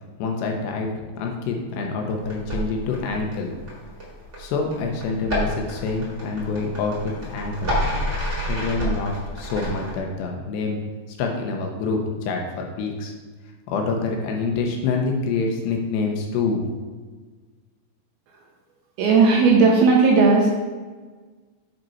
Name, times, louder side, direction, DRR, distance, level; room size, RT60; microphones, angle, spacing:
voice 1, 0.2-3.5 4.4-7.7 8.5-10.8 11.1-13.1 13.7-16.6, left 4 dB, 80° left, 1 dB, 2.8 m, -26 dB
sound 1, 2.2-10.0, equal, 30° right, 1.4 m, -29 dB
voice 2, 19.0-20.5, right 4 dB, 80° right, -1 dB, 2.4 m, -15 dB
7.4 x 5.2 x 4.5 m, 1.4 s
omnidirectional pair, 5.1 m